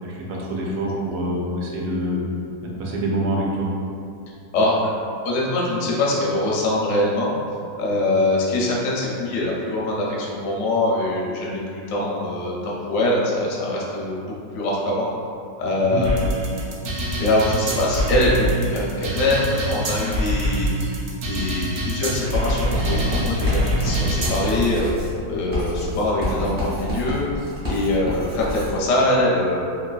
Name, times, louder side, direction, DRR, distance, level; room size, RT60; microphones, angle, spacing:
voice 1, 0.0-2.2 2.6-3.7 15.8-16.0, right 1 dB, 90° right, -3 dB, 1.3 m, -26 dB
voice 2, 4.5-4.9 5.2-7.4 7.8-15.1 15.6-16.6 17.2-20.9 21.2-24.9 25.3-29.6, left 1 dB, 65° left, -4 dB, 0.8 m, -23 dB
sound 1, 16.0-24.6, right 1 dB, 70° right, 0.8 m, -24 dB
Writing, 22.7-28.8, left 1 dB, 30° right, 0.8 m, -28 dB
3.0 x 2.7 x 2.3 m, 2.4 s
omnidirectional pair, 1.9 m